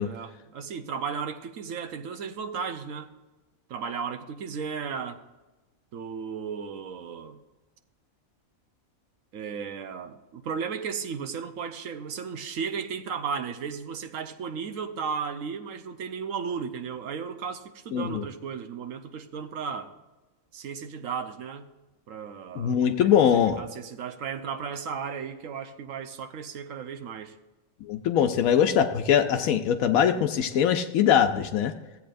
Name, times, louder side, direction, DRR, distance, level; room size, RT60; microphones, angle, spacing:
voice 1, 0.0-3.1 3.7-5.2 5.9-7.4 9.3-19.9 20.5-21.7 22.1-23.2 23.6-27.3, right 6 dB, 75° right, 1.2 m, -35 dB
voice 2, 17.9-18.2 22.5-23.6 27.9-31.7, left 8 dB, 85° left, 1.1 m, -22 dB
15.5 x 8.3 x 2.6 m
omnidirectional pair, 1.4 m